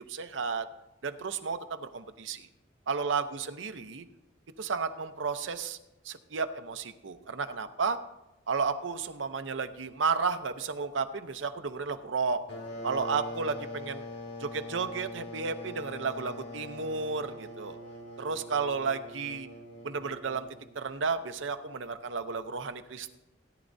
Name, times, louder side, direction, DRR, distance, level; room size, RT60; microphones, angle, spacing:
voice 1, 0.1-0.7 1.0-2.5 2.9-4.0 4.6-5.8 6.0-8.0 8.5-12.4 12.8-14.0 14.4-17.8 18.2-19.5 19.8-20.5 20.7-23.2, right 5 dB, 90° right, 8 dB, 0.7 m, -32 dB
sound 1, 12.5-20.9, left 1 dB, 65° left, 2.3 m, -43 dB
17.0 x 10.0 x 2.7 m, 0.94 s
head